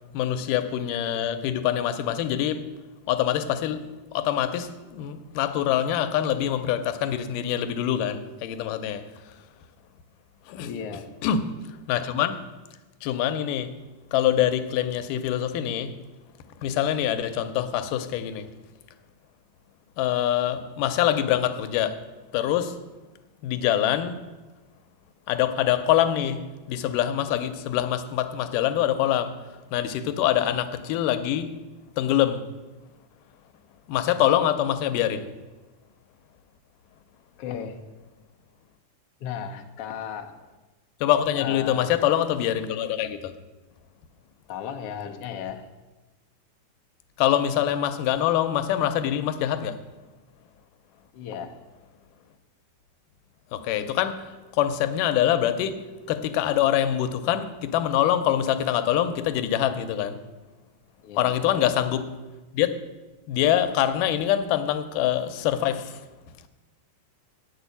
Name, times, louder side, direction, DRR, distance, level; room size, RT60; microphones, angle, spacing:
voice 1, 0.1-2.6 3.1-9.4 10.5-10.7 11.2-12.5 13.0-13.7 14.1-16.0 16.6-18.5 20.0-22.0 22.3-22.8 23.4-24.2 25.3-31.5 32.0-32.5 33.9-35.3 41.0-43.3 47.2-49.8 53.5-60.2 61.2-62.1 62.5-62.7 63.3-66.0, left 11 dB, 90° left, 2.3 m, -25 dB
voice 2, 10.6-11.1 37.4-37.8 39.2-40.3 41.4-41.9 44.5-45.7 51.1-51.6 61.0-61.7, left 8 dB, 70° left, 1.4 m, -35 dB
8.9 x 6.7 x 8.3 m
omnidirectional pair, 3.7 m